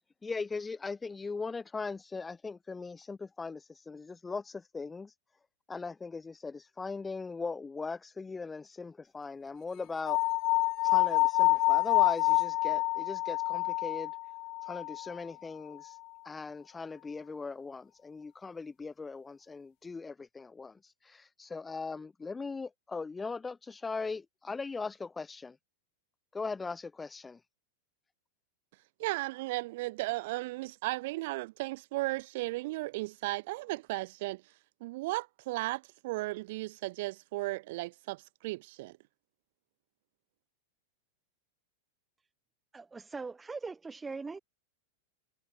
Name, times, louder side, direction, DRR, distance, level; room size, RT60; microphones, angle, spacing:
voice 1, 0.2-5.1 5.7-10.2 10.8-14.1 14.7-16.0 16.3-25.6 26.3-27.4, left 4 dB, 10° left, 3.4 m, -39 dB
sound 1, 10.1-15.2, left 21 dB, 40° left, 0.9 m, -27 dB
voice 2, 29.0-34.4 34.8-38.9, right 20 dB, 50° right, 0.5 m, -35 dB
voice 3, 42.7-44.4, right 4 dB, 10° right, 1.6 m, -41 dB
figure-of-eight pair, 90°, 0 cm